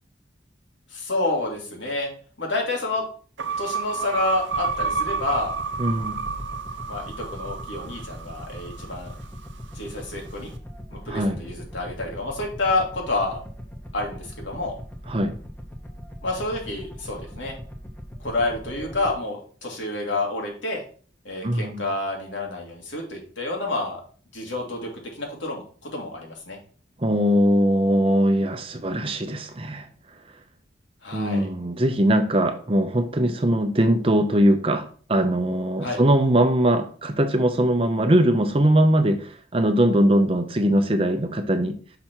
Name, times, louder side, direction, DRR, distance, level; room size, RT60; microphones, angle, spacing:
voice 1, 0.9-2.1 2.4-3.0 3.6-5.5 6.9-9.1 9.7-10.5 10.9-13.4 13.9-14.7 16.2-17.5 18.2-20.8 21.2-24.0 24.3-26.6 31.0-31.5 35.8-36.0, left 2 dB, 80° left, 0 dB, 2.2 m, -29 dB
sound 1, 3.4-9.7, right 5 dB, 80° right, 0.7 m, -30 dB
sound 2, 4.5-19.2, equal, 10° left, 0.8 m, -40 dB
voice 2, 5.8-6.2 11.1-11.4 15.1-15.3 21.4-21.8 27.0-29.9 31.1-41.7, right 1 dB, 30° right, 8 dB, 0.6 m, -21 dB
5.8 x 5.1 x 4.4 m, 0.42 s
head